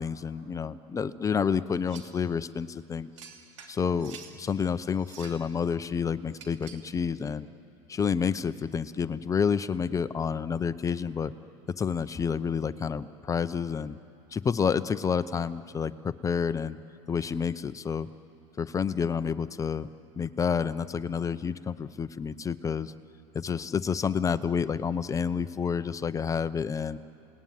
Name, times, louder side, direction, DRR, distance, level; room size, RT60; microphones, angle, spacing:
voice 1, 0.0-3.1 3.7-7.5 7.9-11.3 11.8-14.0 14.3-16.8 17.1-18.1 18.6-19.9 20.2-22.9 23.3-27.0, left 6 dB, 20° left, 14 dB, 0.7 m, -29 dB
sound 1, 1.9-2.2 3.2-4.4 5.0-5.5 6.3-6.9, right 7 dB, 80° right, 3.0 m, -48 dB
29.5 x 19.5 x 9.5 m, 2.9 s
supercardioid pair, 115°, 16 cm